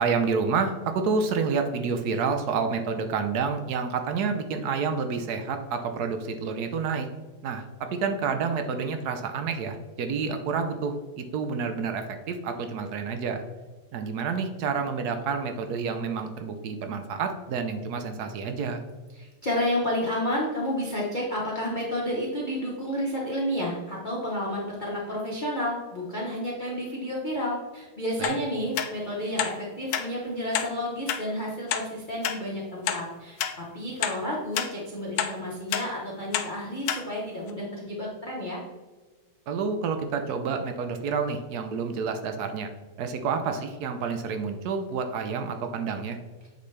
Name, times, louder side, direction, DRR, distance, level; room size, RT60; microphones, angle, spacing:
voice 1, 0.0-7.1 7.4-13.4 13.9-18.8 28.2-28.3 39.5-42.7 43.0-46.2, right 5 dB, 75° right, 7 dB, 0.9 m, -29 dB
voice 2, 19.1-38.6, left 1 dB, 35° left, -5 dB, 0.8 m, -31 dB
sound 1, 28.2-28.4 28.8-28.9 29.4-29.5 29.9-30.1 30.5-30.7 31.1-31.2 31.7-31.8 32.2-32.4 32.9-33.0 33.4-33.5 34.0-34.2 34.5-34.7 35.2-35.3 35.7-35.9 36.3-36.5 36.9-37.0 37.5-37.6, left 9 dB, 75° left, 1.3 m, -28 dB
8.3 x 4.2 x 3.3 m, 1.3 s
omnidirectional pair, 2.4 m